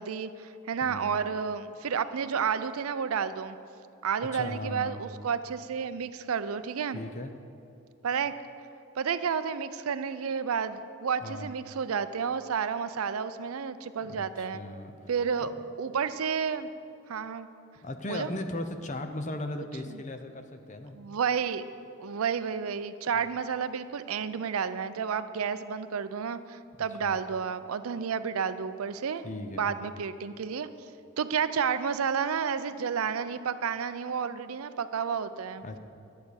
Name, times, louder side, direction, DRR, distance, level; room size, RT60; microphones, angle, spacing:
voice 1, 0.0-3.6 4.0-7.0 8.0-8.3 9.0-14.6 15.1-15.5 15.8-16.7 17.1-17.5 18.1-18.3 19.9-20.0 20.9-21.6 22.0-29.2 29.6-30.7 31.2-35.6, right 6 dB, 85° right, 12 dB, 0.5 m, -31 dB
voice 2, 0.8-1.1 4.2-5.0 6.9-7.3 11.2-11.5 14.1-14.9 15.4-15.5 17.8-21.0 27.0-27.2 29.2-29.7 35.6-35.8, left 1 dB, 35° left, 7 dB, 0.6 m, -37 dB
11.5 x 8.3 x 6.4 m, 2.6 s
head